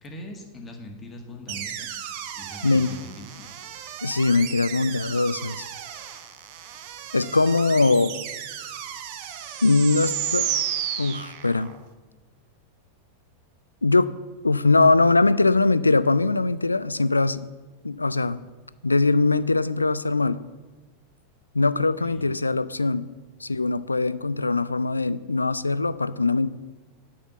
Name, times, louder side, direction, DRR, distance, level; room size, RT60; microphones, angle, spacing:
voice 1, 0.0-2.0 2.3-3.5 22.0-22.3, equal, 20° left, 2 dB, 1.9 m, -41 dB
sound 1, 1.5-11.8, right 10 dB, 45° right, 0.9 m, -33 dB
voice 2, 4.0-5.6 7.1-8.1 9.6-10.5 11.0-11.7 13.8-14.1 14.4-17.5 17.8-18.4 18.8-20.4 21.5-23.1 23.4-26.5, left 3 dB, 80° left, 16 dB, 0.4 m, -21 dB
10.0 x 5.7 x 8.1 m, 1.2 s
figure-of-eight pair, 90°, 0 cm